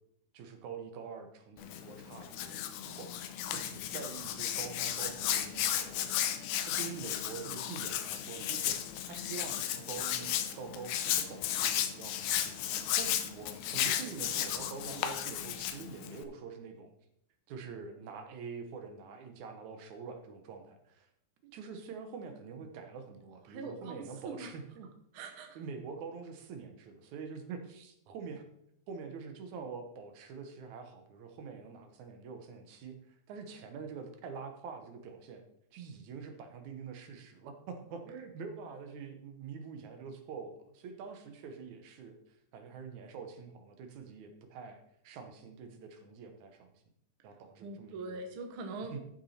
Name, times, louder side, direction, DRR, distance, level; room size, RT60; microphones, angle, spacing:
voice 1, 0.3-8.8 9.1-16.9 17.5-21.1 21.4-24.9 25.6-28.4 28.9-35.4 35.7-46.7 47.2-48.2 48.9-49.0, right 5 dB, 75° right, 6 dB, 2.3 m, -46 dB
Hands, 1.6-16.2, left 10 dB, 85° left, 2.4 m, -34 dB
voice 2, 23.5-24.5 25.1-25.6 47.6-49.0, right 3 dB, 55° right, 4 dB, 1.6 m, -42 dB
13.0 x 6.1 x 4.2 m, 0.74 s
omnidirectional pair, 3.6 m